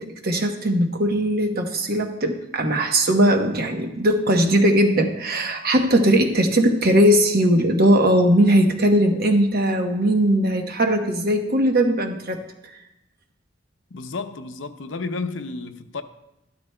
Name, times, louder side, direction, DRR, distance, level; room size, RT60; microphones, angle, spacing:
voice 1, 0.0-12.8, right 1 dB, 50° right, 1.0 m, -19 dB
voice 2, 13.9-16.0, left 3 dB, 75° left, 0.6 m, -31 dB
12.0 x 12.0 x 2.2 m
head